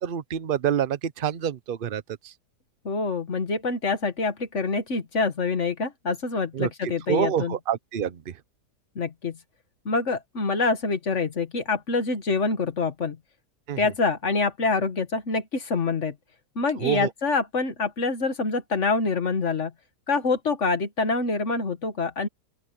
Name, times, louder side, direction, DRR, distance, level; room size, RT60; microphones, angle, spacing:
voice 1, 0.0-2.0 6.5-6.7 7.1-8.2 13.7-13.8 16.8-17.1, right 9 dB, 45° right, 0.8 m, -26 dB
voice 2, 2.8-7.6 9.0-9.4 9.9-13.2 13.8-16.2 16.6-19.7 20.1-22.3, left 4 dB, 45° left, 1.9 m, -26 dB
open air
omnidirectional pair, 1.7 m